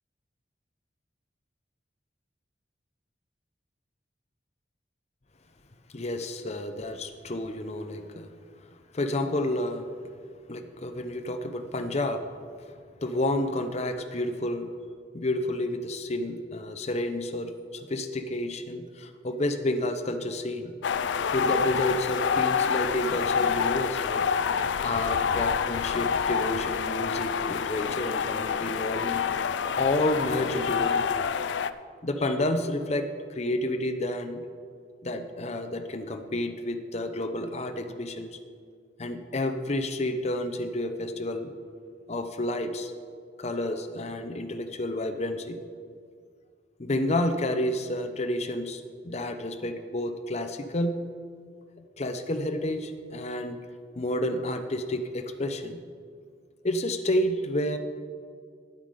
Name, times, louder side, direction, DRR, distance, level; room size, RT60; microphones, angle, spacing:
voice 1, 5.9-8.3 8.9-9.9 10.5-12.3 13.0-14.7 15.1-20.7 21.3-24.3 24.8-29.3 29.8-31.1 32.0-34.4 35.0-38.4 39.0-41.5 42.1-42.9 43.4-45.6 46.8-51.0 51.8-53.6 54.0-55.8 56.6-57.8, left 1 dB, 35° left, 7 dB, 0.7 m, -30 dB
sound 1, 20.8-31.7, left 6 dB, 75° left, 0.4 m, -27 dB
10.5 x 8.8 x 5.2 m, 2.1 s
head